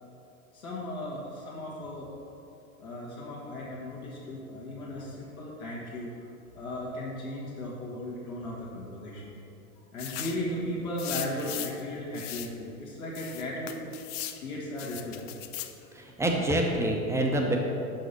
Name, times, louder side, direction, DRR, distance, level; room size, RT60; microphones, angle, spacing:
voice 1, 0.5-2.1 2.8-6.1 6.5-9.4 9.9-13.9 14.4-15.2, left 1 dB, 75° left, -6 dB, 1.5 m, -36 dB
sound 1, 10.0-10.4 11.0-11.8 12.1-12.5 13.2-14.4 14.8-15.8, left 12 dB, 45° left, 0.5 m, -38 dB
voice 2, 15.9-17.6, right 1 dB, 5° right, 1 dB, 0.6 m, -26 dB
5.8 x 5.2 x 5.2 m, 2.7 s
figure-of-eight pair, 85°, 44 cm